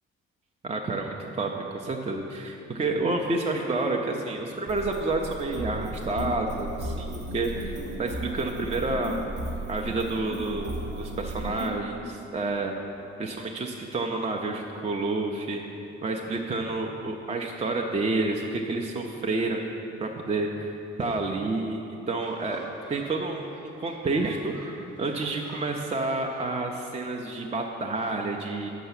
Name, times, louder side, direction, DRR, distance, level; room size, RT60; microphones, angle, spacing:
voice 1, 0.6-9.2 9.7-12.9 13.2-15.6 16.0-19.6 20.0-21.8 22.1-22.6 22.9-28.7, right 2 dB, 15° right, 1 dB, 0.5 m, -29 dB
sound 1, 4.7-11.7, right 1 dB, 40° right, 0.9 m, -35 dB
sound 2, 22.2-27.3, right 2 dB, 85° right, 0.8 m, -49 dB
7.0 x 5.4 x 5.8 m, 2.9 s
figure-of-eight pair, 40°, 37 cm